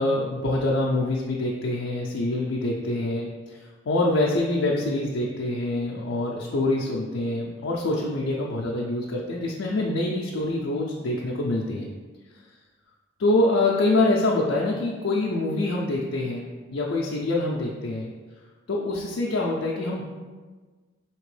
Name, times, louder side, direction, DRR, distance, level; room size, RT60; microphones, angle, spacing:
voice 1, 0.0-3.6 3.9-11.9 13.2-18.1 18.7-20.0, left 2 dB, 80° left, -3 dB, 0.5 m, -25 dB
4.4 x 2.9 x 3.2 m, 1.4 s
head